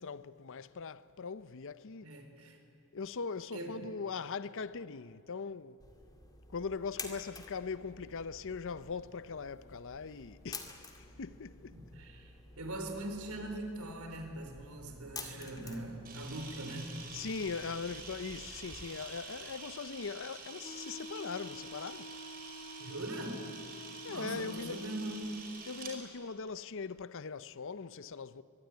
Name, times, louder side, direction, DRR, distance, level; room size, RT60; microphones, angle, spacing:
voice 1, 0.0-2.1 2.9-5.8 6.5-11.9 17.1-22.1 24.0-24.8 25.7-28.4, left 5 dB, 60° left, 0.7 m, -40 dB
voice 2, 2.0-2.6 3.5-3.8 11.7-16.9 22.8-23.5 24.1-25.4, right 1 dB, 70° right, 4.1 m, -41 dB
sound 1, 5.8-18.9, left 3 dB, 15° left, 2.3 m, -51 dB
Camera, 16.0-25.9, right 4 dB, 40° right, 5.1 m, -48 dB
Wind instrument woodwind instrument, 20.6-25.5, left 2 dB, 35° left, 1.1 m, -49 dB
24.0 x 23.0 x 9.5 m
head